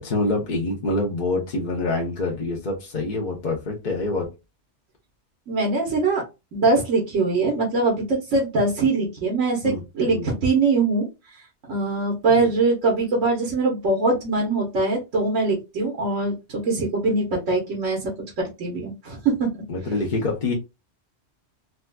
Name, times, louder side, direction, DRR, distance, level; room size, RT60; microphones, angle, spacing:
voice 1, 0.0-4.3 9.6-10.3 12.4-12.5 19.7-20.5, left 2 dB, 45° left, -2 dB, 0.8 m, -26 dB
voice 2, 5.5-6.2 6.5-11.1 11.7-18.1 18.4-19.5, right 3 dB, 90° right, -2 dB, 1.4 m, -22 dB
4.1 x 2.3 x 2.2 m, 0.25 s
omnidirectional pair, 1.3 m